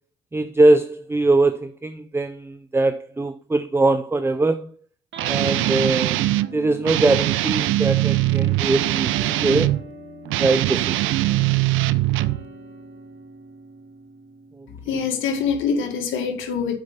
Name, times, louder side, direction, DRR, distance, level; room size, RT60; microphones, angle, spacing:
voice 1, 0.3-4.7 5.3-6.2 6.5-9.1 9.4-9.8 10.4-11.1 14.6-15.0, right 2 dB, 10° right, 0.5 m, -21 dB
sound 1, 5.1-8.5 9.0-15.8, right 6 dB, 65° right, 1.6 m, -39 dB
Guitar, 5.2-6.5 6.9-9.8 10.3-12.4, right 16 dB, 90° right, 0.5 m, -21 dB
voice 2, 14.9-16.8, left 6 dB, 85° left, 1.9 m, -24 dB
7.8 x 4.9 x 5.5 m
cardioid pair, 90°, 20 cm